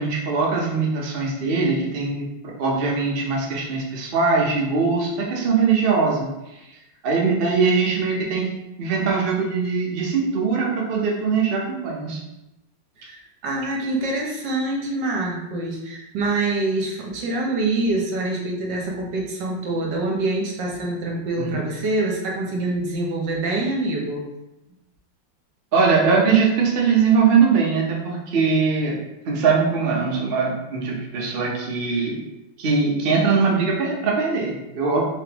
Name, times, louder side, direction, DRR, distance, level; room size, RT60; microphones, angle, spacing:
voice 1, 0.0-6.3 7.0-8.5 8.8-12.2 21.4-21.6 25.7-29.0 29.3-32.2 32.6-35.0, right 5 dB, 80° right, -2 dB, 0.5 m, -21 dB
voice 2, 13.0-24.2, right 2 dB, 65° right, -1 dB, 1.4 m, -25 dB
3.7 x 3.6 x 2.9 m, 0.94 s
omnidirectional pair, 2.2 m